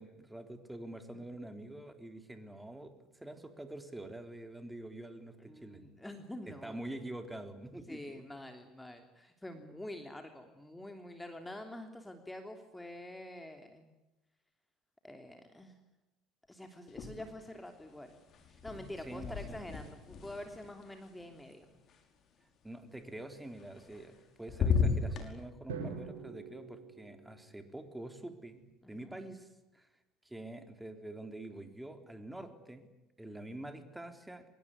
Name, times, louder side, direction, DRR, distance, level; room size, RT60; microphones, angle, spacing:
voice 1, 0.0-5.8 6.5-8.3 19.0-19.7 22.6-29.5 29.7-29.9 30.2-32.9 33.2-34.5, right 1 dB, 10° right, 7 dB, 3.9 m, -46 dB
voice 2, 5.4-6.8 7.9-13.9 15.0-15.8 16.5-18.2 18.5-21.7 28.8-29.1, left 1 dB, 10° left, 5 dB, 3.1 m, -47 dB
sound 1, 16.9-17.6 17.9-22.0 23.6-24.2 24.5-25.3, left 5 dB, 45° left, 5.3 m, -35 dB
Drum, 25.7-27.8, right 5 dB, 75° right, 6.3 m, -44 dB
25.0 x 21.5 x 9.8 m, 0.99 s
hypercardioid pair, 65°, 0 cm